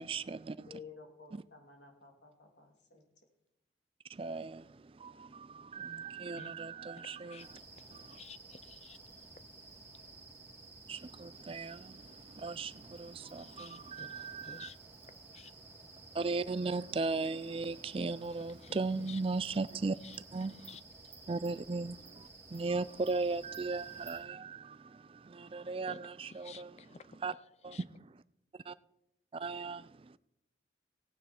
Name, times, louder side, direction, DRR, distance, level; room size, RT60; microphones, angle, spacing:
voice 1, 0.0-0.7 4.1-7.5 7.9-8.2 10.9-14.7 16.1-20.7 21.3-26.9 27.2-27.3 27.6-28.2 28.7-28.8 29.3-30.2, right 3 dB, 30° right, 0.4 m, -37 dB
voice 2, 0.6-3.0, left 5 dB, 85° left, 2.8 m, -53 dB
voice 3, 7.0-9.0 13.4-14.8 15.3-15.5 18.6-19.2 20.0-20.2 20.6-20.8 25.9-26.0 26.4-27.1 27.7-27.8, left 6 dB, 35° left, 0.5 m, -53 dB
sound 1, 7.4-24.2, right 3 dB, 15° right, 2.6 m, -54 dB
17.5 x 9.4 x 4.4 m
head